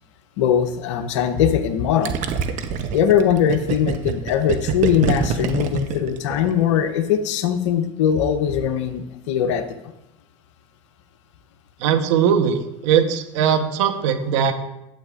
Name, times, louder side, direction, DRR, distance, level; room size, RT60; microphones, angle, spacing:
voice 1, 0.4-2.1 2.9-9.6, left 9 dB, 75° left, 9 dB, 0.9 m, -20 dB
Gurgling, 2.0-6.7, right 7 dB, 55° right, 0.9 m, -25 dB
voice 2, 11.8-14.5, right 8 dB, 75° right, 7 dB, 1.1 m, -19 dB
11.5 x 8.4 x 2.5 m, 0.91 s
hypercardioid pair, 85°, 16 cm